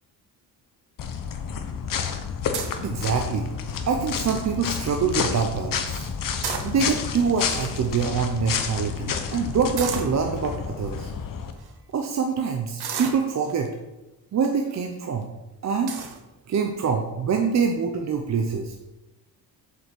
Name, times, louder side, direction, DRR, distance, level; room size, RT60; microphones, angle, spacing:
sound 1, 1.0-11.5, left 6 dB, 55° left, 0.9 m, -30 dB
sound 2, 2.5-2.9 3.5-3.8 4.2-4.3 4.6-4.9 6.2-7.1 7.8-7.9 8.1-8.3 9.8-10.2 10.9-11.0 11.5-11.7 12.8-13.7 14.4-14.8 15.2-15.3 15.9-16.2, right 7 dB, 75° right, 1.3 m, -32 dB
voice 1, 2.8-3.5 3.9-6.1 6.6-11.1 11.9-13.7 14.3-15.3 15.6-15.9 16.5-18.7, right 6 dB, 45° right, 3 dB, 0.7 m, -25 dB
7.9 x 5.5 x 6.0 m, 1.0 s
wide cardioid pair, 160°, 39 cm